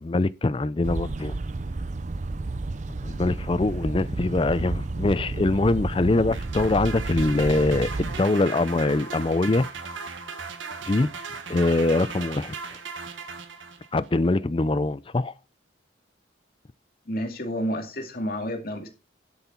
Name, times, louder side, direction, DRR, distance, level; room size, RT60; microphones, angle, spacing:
voice 1, 0.0-1.3 3.0-9.7 10.9-11.1 11.5-12.5 13.9-15.3, left 2 dB, 30° left, 0.4 m, -23 dB
sound 1, 0.8-8.2, right 2 dB, 40° right, 0.5 m, -31 dB
sound 2, 6.3-14.1, right 5 dB, 90° right, 1.7 m, -37 dB
voice 2, 17.1-18.9, equal, 50° left, 2.4 m, -30 dB
11.0 x 8.1 x 4.4 m
head